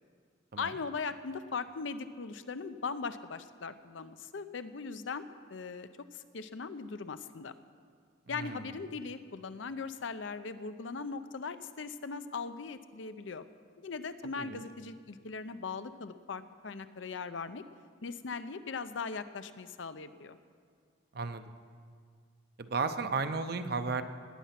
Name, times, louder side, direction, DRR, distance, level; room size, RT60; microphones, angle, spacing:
voice 1, 0.6-5.2 5.5-7.5 8.3-13.5 13.8-17.6 18.0-20.4, left 4 dB, 80° left, 11 dB, 0.6 m, -39 dB
voice 2, 8.3-8.7 14.2-14.6 21.1-21.4 22.6-24.0, right 4 dB, 55° right, 9 dB, 0.7 m, -34 dB
18.5 x 9.3 x 5.9 m, 2.1 s
head